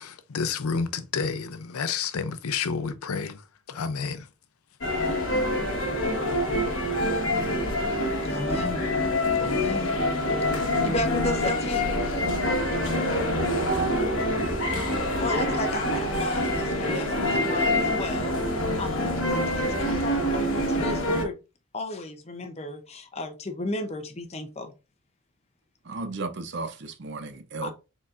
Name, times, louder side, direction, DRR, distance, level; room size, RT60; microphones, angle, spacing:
voice 1, 0.0-4.3, left 5 dB, 90° left, 0.5 m, -30 dB
sound 1, 4.8-21.3, left 1 dB, 60° left, 1.2 m, -26 dB
voice 2, 8.2-8.8 9.4-9.9 10.8-11.9 15.2-21.4 21.7-24.7 27.6-27.7, left 2 dB, 30° left, 0.7 m, -34 dB
voice 3, 25.8-27.7, right 3 dB, 55° right, 0.6 m, -34 dB
4.1 x 4.0 x 2.4 m
head